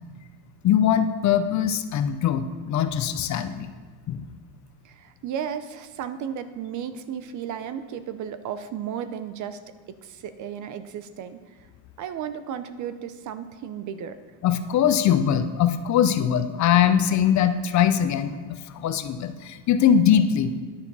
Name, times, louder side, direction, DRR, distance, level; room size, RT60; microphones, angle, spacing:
voice 1, 0.6-3.7 4.1-4.2 14.4-20.5, left 9 dB, 40° left, 10 dB, 0.6 m, -22 dB
voice 2, 4.8-9.6 9.9-11.5 12.0-14.2, right 8 dB, 40° right, 12 dB, 0.6 m, -34 dB
10.5 x 7.0 x 5.4 m, 1.5 s
supercardioid pair, 125°, 46 cm